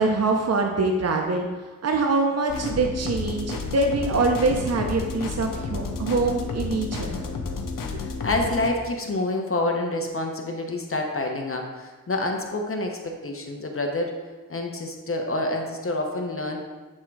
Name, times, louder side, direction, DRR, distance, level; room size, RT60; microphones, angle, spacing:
voice 1, 0.0-1.5 1.8-7.3 7.9-8.0, right 3 dB, 50° right, 3 dB, 0.7 m, -24 dB
sound 1, 2.5-8.7, left 4 dB, 85° left, 0.7 m, -31 dB
voice 2, 7.8-14.1 14.5-16.6, left 2 dB, 40° left, 2 dB, 1.0 m, -28 dB
7.6 x 3.6 x 4.7 m, 1.3 s
wide cardioid pair, 70°, 32 cm